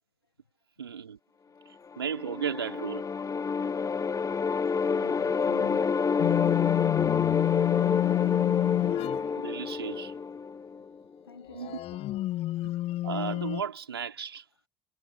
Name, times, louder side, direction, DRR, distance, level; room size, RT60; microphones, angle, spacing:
voice 1, 0.8-1.2 2.0-3.1 9.4-10.1 11.5-11.8 13.0-14.4, right 7 dB, 80° right, 3.5 m, -34 dB
sound 1, 1.9-11.0, left 5 dB, 25° left, 1.3 m, -29 dB
voice 2, 4.9-6.0 11.2-12.0 12.6-12.8, left 6 dB, 80° left, 6.0 m, -48 dB
sound 2, 6.2-9.3 11.6-13.6, left 15 dB, 50° left, 1.1 m, -28 dB
figure-of-eight pair, 55°, 13 cm